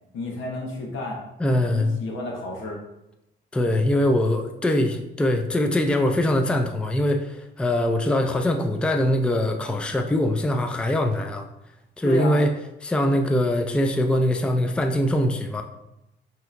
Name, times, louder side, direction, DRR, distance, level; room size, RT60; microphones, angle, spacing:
voice 1, 0.1-1.2 1.7-2.8 12.0-12.4, left 2 dB, 80° left, 0 dB, 1.0 m, -31 dB
voice 2, 1.4-2.0 3.5-11.5 12.0-12.5 12.8-15.6, left 1 dB, 5° left, 5 dB, 0.4 m, -22 dB
5.6 x 2.9 x 2.5 m, 0.88 s
cardioid pair, 90°, 20 cm